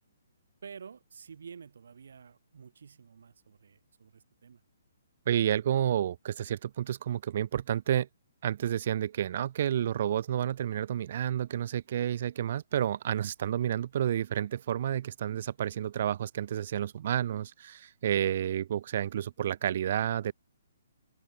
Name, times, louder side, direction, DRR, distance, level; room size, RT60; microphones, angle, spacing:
voice 1, 0.6-4.6, right 6 dB, 70° right, 2.7 m, -50 dB
voice 2, 5.3-8.1 8.4-20.3, right 10 dB, 50° right, 0.7 m, -30 dB
hypercardioid pair, 145°, 0 cm